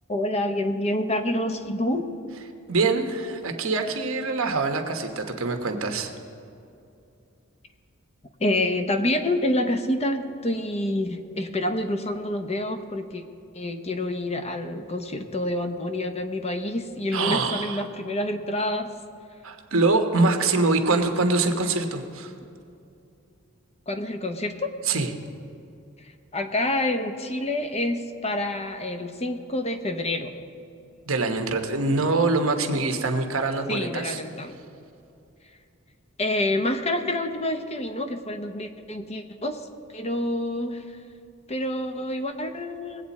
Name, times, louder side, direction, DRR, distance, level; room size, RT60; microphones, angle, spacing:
voice 1, 0.1-2.1 8.4-13.2 13.5-18.9 23.9-24.7 26.3-30.3 33.7-34.5 36.2-39.6 39.9-41.0 41.5-43.0, left 1 dB, 30° left, 7 dB, 0.7 m, -27 dB
voice 2, 2.7-6.1 17.1-17.8 19.4-22.3 24.9-25.1 31.1-34.2, right 3 dB, 65° right, 5 dB, 1.1 m, -24 dB
20.0 x 8.3 x 4.2 m, 2.6 s
head